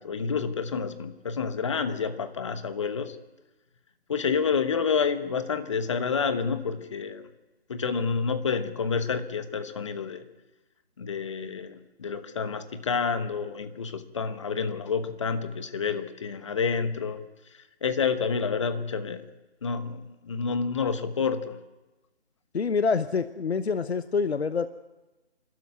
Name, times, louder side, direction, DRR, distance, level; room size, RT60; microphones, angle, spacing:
voice 1, 0.0-3.2 4.1-7.3 7.7-10.2 11.0-17.2 17.8-19.2 19.6-21.6, left 5 dB, 25° left, 11 dB, 1.1 m, -29 dB
voice 2, 22.5-24.7, left 5 dB, 70° left, 12 dB, 1.0 m, -26 dB
27.0 x 13.0 x 9.6 m, 1.1 s
figure-of-eight pair, 160°, 33 cm